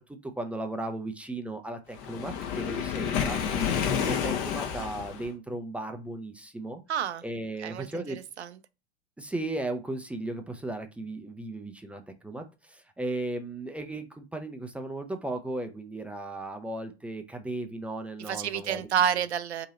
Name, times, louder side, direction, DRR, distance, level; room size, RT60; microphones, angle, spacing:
voice 1, 0.0-6.8 7.2-8.2 9.2-18.9, right 2 dB, 5° right, 0.3 m, -36 dB
Waves surf, 2.0-5.3, left 7 dB, 50° left, 0.9 m, -29 dB
voice 2, 6.9-7.2 7.6-8.6 18.2-19.7, right 9 dB, 75° right, 0.6 m, -29 dB
2.9 x 2.7 x 4.1 m
figure-of-eight pair, 85°, 33 cm